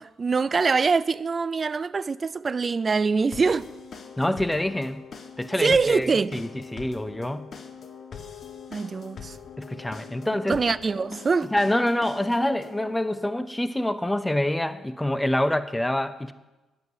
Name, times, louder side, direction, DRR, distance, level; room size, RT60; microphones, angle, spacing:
voice 1, 0.0-3.7 5.6-6.4 8.7-9.4 10.5-11.5, right 4 dB, 35° right, 0.5 m, -24 dB
sound 1, 3.3-12.9, left 6 dB, 50° left, 1.4 m, -43 dB
voice 2, 4.2-5.0 5.4-7.5 9.6-10.6 11.5-16.3, left 1 dB, 10° left, 0.7 m, -26 dB
10.5 x 9.8 x 8.1 m
cardioid pair, 90°, 0 cm